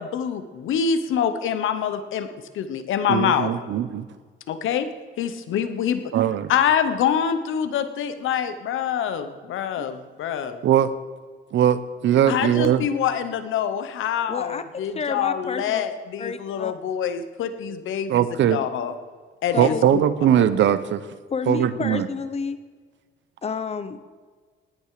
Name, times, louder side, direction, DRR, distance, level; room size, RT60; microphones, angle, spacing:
voice 1, 0.0-2.3 2.5-3.5 4.5-4.9 5.2-6.0 6.5-10.6 12.3-18.9 19.4-20.0 20.4-20.5, left 8 dB, 85° left, 10 dB, 1.2 m, -25 dB
voice 2, 3.1-4.1 6.1-6.5 10.6-10.9 11.5-12.9 18.1-18.6 19.5-21.1 21.5-22.1, right 10 dB, 70° right, 14 dB, 0.9 m, -20 dB
voice 3, 14.3-15.8 16.2-16.7 19.5-19.9 21.3-22.6 23.4-24.1, left 5 dB, 30° left, 12 dB, 0.9 m, -30 dB
18.0 x 10.0 x 5.0 m, 1.5 s
cardioid pair, 135°, 20 cm